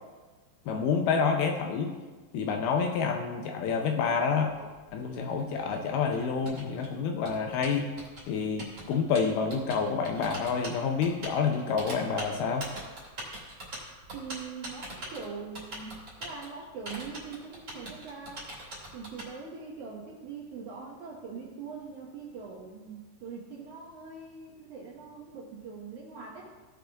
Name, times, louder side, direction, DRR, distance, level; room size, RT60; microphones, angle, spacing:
voice 1, 0.7-2.0 2.3-4.5 4.9-7.9 8.3-12.7, left 5 dB, 80° left, 4 dB, 2.3 m, -28 dB
Typing, 4.4-19.3, right 1 dB, 25° right, 2.9 m, -43 dB
voice 2, 14.1-18.5 18.9-26.5, right 5 dB, 70° right, -4 dB, 1.9 m, -42 dB
17.5 x 5.8 x 3.5 m, 1.3 s
omnidirectional pair, 4.9 m